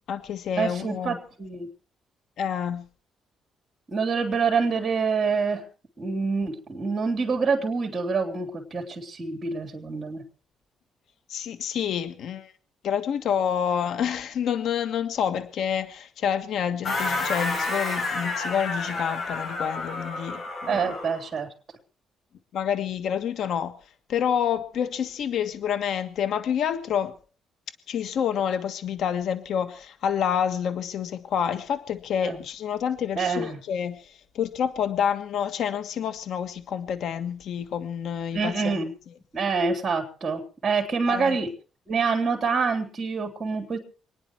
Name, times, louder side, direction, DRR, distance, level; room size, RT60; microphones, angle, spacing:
voice 1, 0.0-1.2 2.4-2.8 11.3-12.5 12.8-21.0 22.5-23.7 24.1-27.2 27.9-39.2 41.1-41.4, left 8 dB, 70° left, 12 dB, 1.5 m, -28 dB
voice 2, 0.6-1.7 3.9-5.6 6.0-10.2 20.7-21.5 32.2-32.4 33.2-33.6 38.3-38.9 39.3-41.5 41.9-43.8, right 5 dB, 35° right, 1 dB, 3.6 m, -26 dB
sound 1, 16.8-21.2, left 3 dB, 50° left, 7.4 m, -30 dB
26.5 x 9.8 x 4.6 m, 0.38 s
cardioid pair, 90°, 0 cm